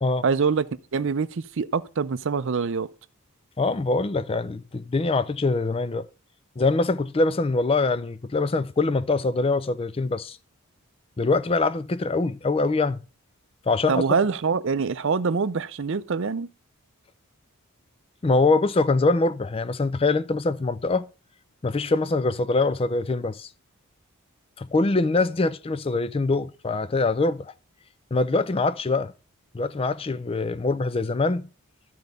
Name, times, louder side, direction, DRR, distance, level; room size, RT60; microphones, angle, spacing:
voice 1, 0.2-2.9 13.9-16.5, right 5 dB, 55° right, 0.5 m, -25 dB
voice 2, 3.6-6.1 6.6-10.4 11.2-13.0 13.7-14.0 18.2-21.0 21.6-23.5 24.6-27.5 28.1-29.1 29.5-31.5, left 3 dB, 25° left, 0.4 m, -23 dB
12.0 x 4.7 x 5.2 m
head